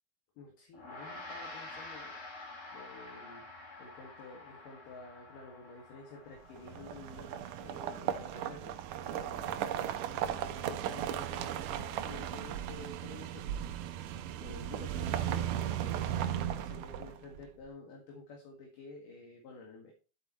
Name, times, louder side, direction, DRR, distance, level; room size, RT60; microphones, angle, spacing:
voice 1, 0.4-2.1 2.4-3.4 3.8-19.9, left 3 dB, 65° left, 0 dB, 3.4 m, -51 dB
Gong, 0.7-10.3, left 2 dB, 25° left, 1.9 m, -49 dB
sound 1, 6.6-17.4, right 10 dB, 75° right, 2.2 m, -36 dB
13.0 x 8.2 x 3.0 m, 0.34 s
omnidirectional pair, 4.3 m